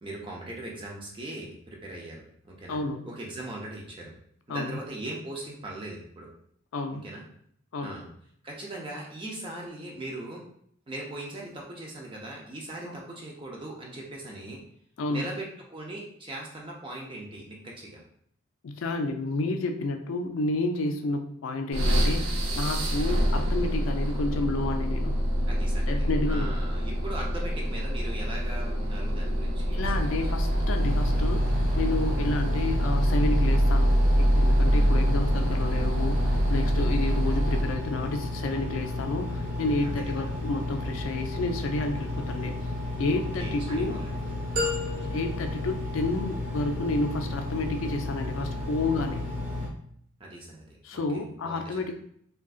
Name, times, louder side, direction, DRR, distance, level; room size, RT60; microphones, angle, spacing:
voice 1, 0.0-4.1 4.5-6.3 6.9-7.3 7.8-8.1 8.4-10.4 10.9-14.6 15.1-18.0 22.9-23.2 25.4-30.6 34.7-34.9 39.8-40.2 43.1-44.2 50.2-51.8, right 1 dB, 25° right, -2 dB, 0.4 m, -40 dB
voice 2, 2.7-3.1 4.5-4.8 6.7-7.1 7.7-8.0 12.8-13.0 15.0-15.2 18.6-25.2 25.9-26.6 29.7-42.5 43.0-44.0 45.0-49.2 50.8-51.9, left 2 dB, 70° left, 6 dB, 0.4 m, -30 dB
sound 1, 21.7-37.9, equal, 80° right, 0.5 m, -25 dB
Engine, 30.8-49.7, left 2 dB, 5° right, 0.9 m, -33 dB
sound 2, 44.6-46.6, left 2 dB, 45° right, 0.8 m, -34 dB
3.7 x 2.2 x 2.4 m, 0.67 s
head